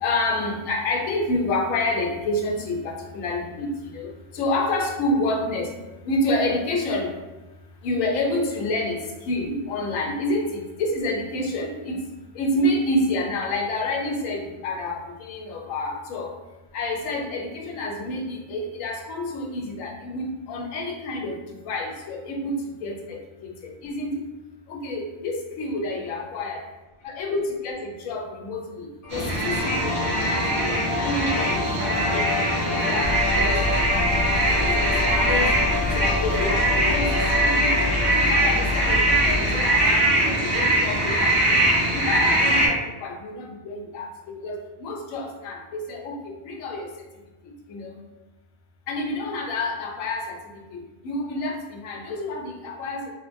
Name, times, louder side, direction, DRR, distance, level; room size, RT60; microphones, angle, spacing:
voice 1, 0.0-3.7 3.9-5.7 6.1-7.1 7.8-12.0 12.4-16.3 16.7-21.4 21.7-22.6 22.8-24.2 24.7-26.6 27.0-33.5 34.0-34.2 34.6-35.6 36.0-37.1 37.4-37.7 38.1-41.6 41.9-46.9 47.7-47.9 48.9-50.4 50.7-50.8 51.0-53.1, left 2 dB, 80° left, 0 dB, 1.0 m, -28 dB
sound 1, 29.0-40.1, left 3 dB, 50° left, 0.8 m, -30 dB
sound 2, 29.1-42.7, right 1 dB, 45° right, 0.4 m, -22 dB
sound 3, 33.0-39.9, left 4 dB, 80° right, 1.1 m, -29 dB
3.0 x 2.1 x 2.5 m, 1.1 s
omnidirectional pair, 1.4 m